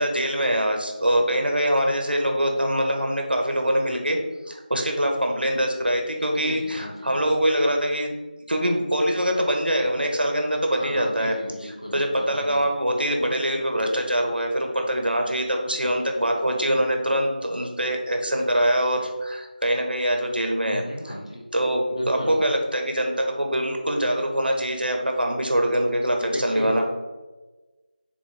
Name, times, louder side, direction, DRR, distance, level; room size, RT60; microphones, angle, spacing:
voice 1, 0.0-4.2 4.5-8.1 8.5-11.4 11.6-21.2 21.5-26.9, equal, 75° right, 2 dB, 1.3 m, -24 dB
voice 2, 6.4-7.2 10.8-12.7 20.6-21.4 21.9-22.4 26.2-26.8, equal, 35° left, -3 dB, 1.3 m, -35 dB
7.2 x 3.2 x 4.4 m, 1.2 s
figure-of-eight pair, 175°, 5 cm